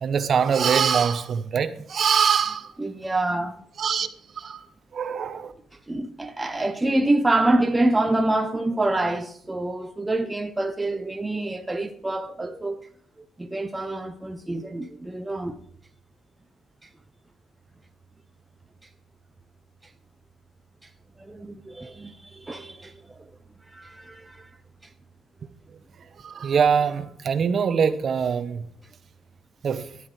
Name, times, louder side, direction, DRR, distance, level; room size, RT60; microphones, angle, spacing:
voice 1, 0.0-2.7 3.8-4.1 4.4-4.6 4.9-5.5 26.2-28.7 29.6-29.8, right 7 dB, 40° right, 0.9 m, -23 dB
voice 2, 2.8-3.6 5.9-12.9 13.4-15.6 16.8-16.9 20.8-20.9 21.2-23.3 23.7-24.5, right 2 dB, 10° right, 0.6 m, -26 dB
12.5 x 11.0 x 3.2 m
cardioid pair, 125°, 0 cm